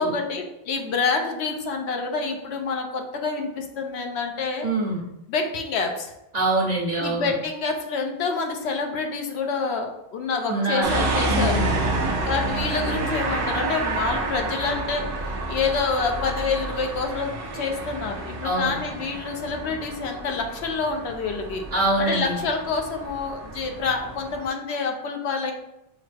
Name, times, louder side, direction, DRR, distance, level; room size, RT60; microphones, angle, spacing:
voice 1, 0.0-4.7 5.3-6.1 7.0-11.6 12.2-21.6 22.0-25.5, left 4 dB, 85° left, 3 dB, 0.9 m, -27 dB
voice 2, 4.6-5.0 6.3-7.3 10.5-10.9 11.3-11.7 18.4-18.7 21.7-22.4, right 2 dB, 40° right, -6 dB, 1.2 m, -24 dB
sound 1, 10.8-24.5, right 2 dB, 60° right, 0.9 m, -29 dB
6.2 x 2.1 x 3.3 m, 0.86 s
omnidirectional pair, 1.1 m